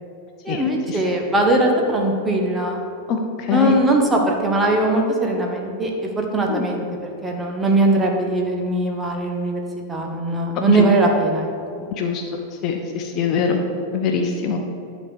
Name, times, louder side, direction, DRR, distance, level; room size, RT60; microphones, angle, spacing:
voice 1, 0.4-2.8 3.5-9.6 9.9-11.9, right 2 dB, 15° right, 1 dB, 1.4 m, -20 dB
voice 2, 12.6-13.6 13.9-14.6, left 6 dB, 35° left, 3 dB, 0.9 m, -22 dB
11.5 x 4.3 x 6.7 m, 2.5 s
figure-of-eight pair, 90°, 0 cm